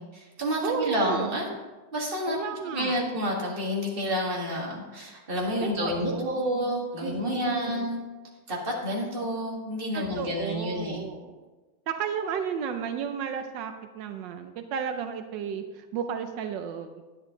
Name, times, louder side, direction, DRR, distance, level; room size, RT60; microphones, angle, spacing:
voice 1, 0.0-1.5 1.9-2.4 2.7-8.0 8.5-11.1, equal, 30° right, -3 dB, 2.2 m, -29 dB
voice 2, 0.6-1.6 2.3-3.0 5.6-6.7 7.0-7.9 9.9-11.4 11.9-17.0, right 7 dB, 85° right, 7 dB, 1.4 m, -33 dB
10.0 x 10.0 x 3.8 m, 1.2 s
omnidirectional pair, 1.9 m